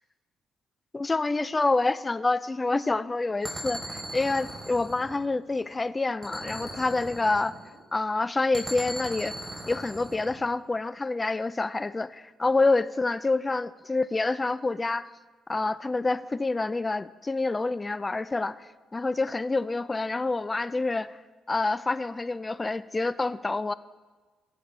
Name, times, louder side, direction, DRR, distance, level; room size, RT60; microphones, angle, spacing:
voice 1, 0.9-7.5 7.9-9.3 9.7-15.1 15.5-21.2 21.5-23.7, left 3 dB, 20° left, 17 dB, 0.3 m, -27 dB
sound 1, 3.4-5.7 6.2-7.8 8.5-10.5, right 1 dB, 15° right, 3.2 m, -39 dB
14.5 x 6.6 x 3.2 m, 1.4 s
cardioid pair, 90°, 0 cm